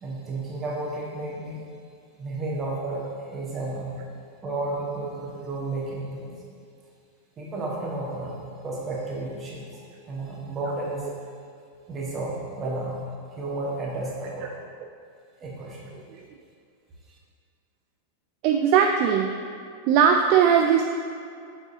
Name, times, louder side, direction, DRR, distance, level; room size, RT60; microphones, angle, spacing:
voice 1, 0.0-1.6 2.2-3.9 4.4-6.3 7.4-9.8 10.1-11.1 11.9-13.0 13.4-14.5 15.4-15.9, right 2 dB, 25° right, -4 dB, 1.5 m, -32 dB
voice 2, 18.4-19.3 19.9-20.8, right 7 dB, 45° right, 4 dB, 0.3 m, -19 dB
6.8 x 6.8 x 2.8 m, 2.4 s
figure-of-eight pair, 90°, 0 cm